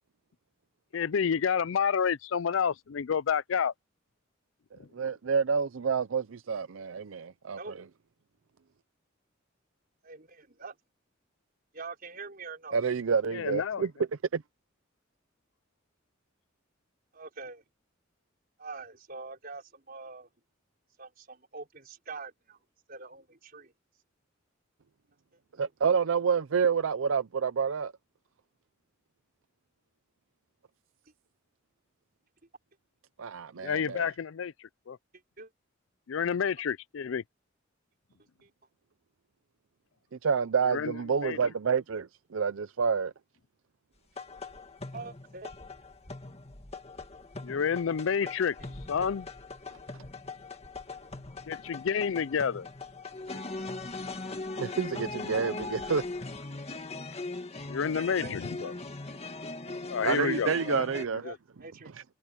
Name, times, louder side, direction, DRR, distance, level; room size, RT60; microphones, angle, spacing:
voice 1, 0.9-3.7 4.8-4.9 13.3-13.9 33.6-35.0 36.1-37.2 40.6-41.4 47.4-48.6 48.9-49.3 51.5-52.7 57.7-58.7 59.9-60.8 61.2-61.4, left 7 dB, 70° left, 0.4 m, -29 dB
voice 2, 4.9-7.6 12.7-13.9 14.3-14.4 25.6-27.9 33.2-34.1 40.2-43.1 54.6-56.0 60.0-61.2 61.9-62.0, right 6 dB, 75° right, 0.5 m, -28 dB
voice 3, 10.0-10.7 11.7-12.8 17.1-17.6 18.6-20.3 21.0-22.6 22.9-23.7 25.6-25.7 35.4-35.5 38.4-38.5 44.9-45.5 48.2-48.3 48.6-48.7 57.8-58.8 61.2-61.9, right 4 dB, 45° right, 5.1 m, -44 dB
sound 1, 44.2-61.0, left 3 dB, 30° left, 2.0 m, -40 dB
head